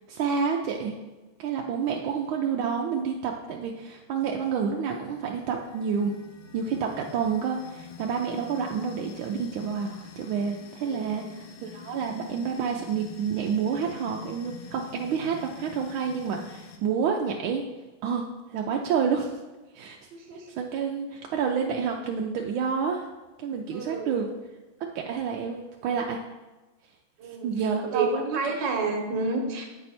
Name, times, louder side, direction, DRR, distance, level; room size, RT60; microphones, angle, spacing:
voice 1, 0.1-1.0 1.4-6.2 6.5-17.6 18.0-19.3 19.7-20.0 20.6-23.1 23.4-24.3 24.8-26.2 27.2-28.4, right 6 dB, 85° right, 1 dB, 1.4 m, -29 dB
sound 1, 4.9-16.8, left 6 dB, 75° left, 1.5 m, -46 dB
voice 2, 10.8-11.3 20.1-20.5 23.7-24.2 27.2-29.7, right 3 dB, 70° right, 2 dB, 1.8 m, -30 dB
8.6 x 4.5 x 4.2 m, 1.2 s
omnidirectional pair, 2.2 m